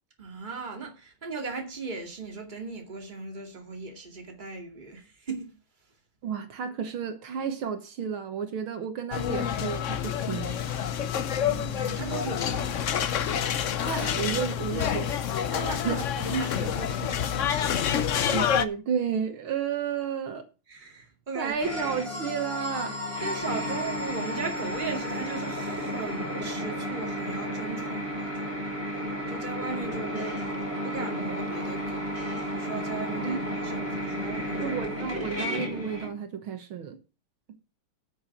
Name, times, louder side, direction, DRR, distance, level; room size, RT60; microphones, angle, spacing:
voice 1, 0.2-5.5 11.4-12.9 15.5-17.9 20.7-21.6 23.2-28.6 29.3-30.4 30.8-32.1 32.5-34.8, right 4 dB, 20° right, 2.4 m, -37 dB
voice 2, 6.2-10.6 13.8-15.2 15.8-16.0 18.3-20.4 21.4-23.0 33.2-33.9 34.6-37.0, right 7 dB, 75° right, 2.1 m, -32 dB
sound 1, 9.1-18.6, left 9 dB, 75° left, 0.7 m, -28 dB
sound 2, 21.6-36.1, equal, 5° right, 5.5 m, -32 dB
12.5 x 6.8 x 6.0 m
omnidirectional pair, 2.3 m